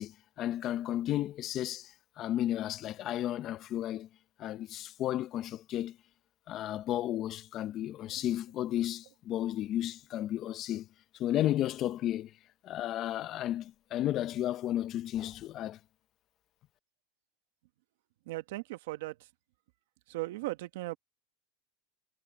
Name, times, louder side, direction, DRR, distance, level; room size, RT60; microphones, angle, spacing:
voice 1, 0.0-4.1 4.4-6.0 6.5-10.9 11.1-12.3 12.6-15.8, left 12 dB, 40° left, 0.7 m, -33 dB
voice 2, 18.2-19.3 20.1-21.0, right 19 dB, 75° right, 1.4 m, -38 dB
supercardioid pair, 145°, 0 cm